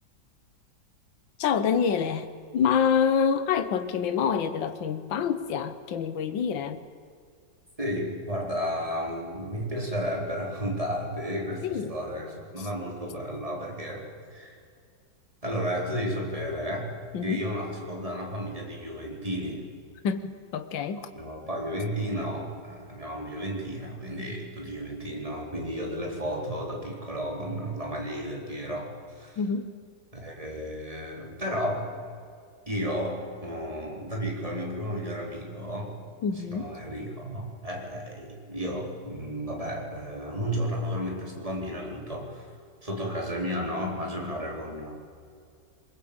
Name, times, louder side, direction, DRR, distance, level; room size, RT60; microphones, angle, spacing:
voice 1, 1.4-6.8 11.6-11.9 17.1-17.4 20.0-21.1 29.4-29.7 36.2-36.7, left 7 dB, 75° left, 10 dB, 1.9 m, -27 dB
voice 2, 7.8-14.6 15.4-16.9 17.2-19.6 21.1-29.4 30.1-31.9 32.7-35.9 36.5-42.5 42.8-45.0, equal, 15° right, 0 dB, 4.2 m, -33 dB
23.0 x 21.5 x 8.8 m, 2.3 s
omnidirectional pair, 2.1 m